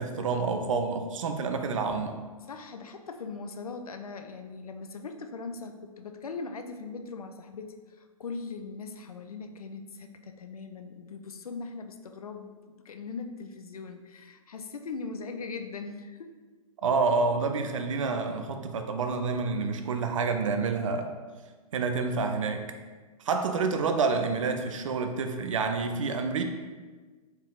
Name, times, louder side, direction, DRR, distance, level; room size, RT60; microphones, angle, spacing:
voice 1, 0.0-2.1 16.8-21.1 21.7-22.7 23.2-26.4, right 4 dB, 60° right, 6 dB, 0.5 m, -28 dB
voice 2, 2.5-12.5 12.8-16.3, left 4 dB, 75° left, 7 dB, 0.4 m, -40 dB
4.3 x 3.4 x 2.4 m, 1.4 s
figure-of-eight pair, 105°, 19 cm